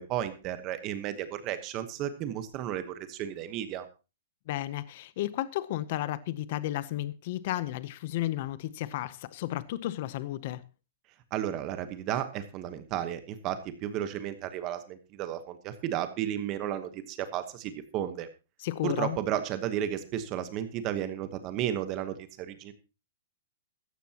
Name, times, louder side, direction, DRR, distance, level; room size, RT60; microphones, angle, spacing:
voice 1, 0.0-3.9 11.3-18.3 18.8-22.7, right 11 dB, 25° right, 1.1 m, -33 dB
voice 2, 4.5-10.6 18.6-19.2, left 14 dB, 40° left, 0.7 m, -33 dB
15.5 x 14.0 x 2.9 m
hypercardioid pair, 175°, 0 cm